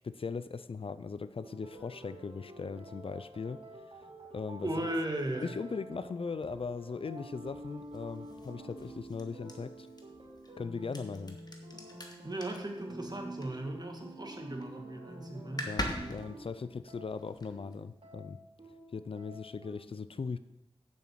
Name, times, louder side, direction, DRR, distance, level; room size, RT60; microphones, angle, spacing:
voice 1, 0.0-3.6 4.3-4.9 5.4-9.9 10.6-11.4 15.6-18.4 18.9-20.4, left 5 dB, 65° left, 14 dB, 0.4 m, -39 dB
sound 1, 1.4-19.7, right 1 dB, 70° right, 2.8 m, -48 dB
voice 2, 4.6-5.6 12.2-15.8, right 1 dB, 40° right, 3 dB, 1.7 m, -37 dB
sound 2, 6.4-14.1 14.4-14.8 15.1-15.2 15.4-17.8, left 1 dB, 40° left, 1.4 m, -43 dB
7.3 x 6.2 x 7.5 m, 0.89 s
wide cardioid pair, 60°, 10 cm